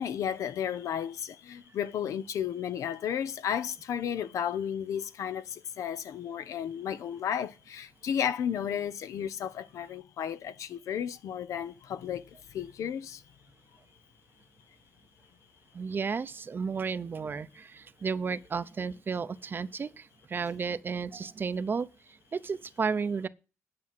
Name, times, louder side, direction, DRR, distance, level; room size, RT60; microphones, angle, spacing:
voice 1, 0.0-12.2 12.5-13.2, left 9 dB, 80° left, 0.7 m, -33 dB
voice 2, 15.7-21.9 22.3-23.3, right 5 dB, 40° right, 0.6 m, -33 dB
9.6 x 6.0 x 7.6 m
cardioid pair, 90°, 5 cm